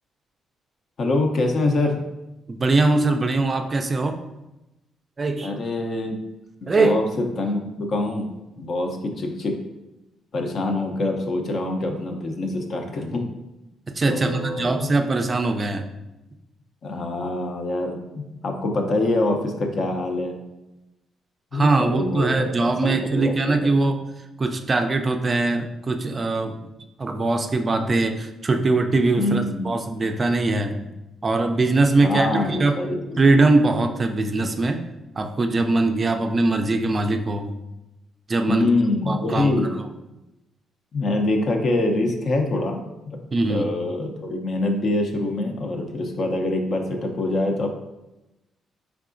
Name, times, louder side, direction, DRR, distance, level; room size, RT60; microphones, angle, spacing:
voice 1, 1.0-2.0 5.4-6.2 6.6-8.3 8.6-9.6 10.3-13.3 14.1-14.9 16.8-20.3 21.5-23.8 29.2-29.8 32.0-33.3 38.5-39.7 40.9-43.2 43.5-47.7, left 2 dB, 50° left, 4 dB, 0.6 m, -25 dB
voice 2, 2.5-4.2 5.2-5.5 6.7-7.0 13.9-15.9 21.5-24.0 24.4-26.6 27.0-30.9 31.2-32.8 33.2-34.8 35.2-37.5 38.3-38.7 39.1-39.6 43.3-43.7, right 3 dB, 35° right, 5 dB, 0.4 m, -21 dB
4.6 x 3.5 x 2.5 m, 0.98 s
cardioid pair, 90°, 0 cm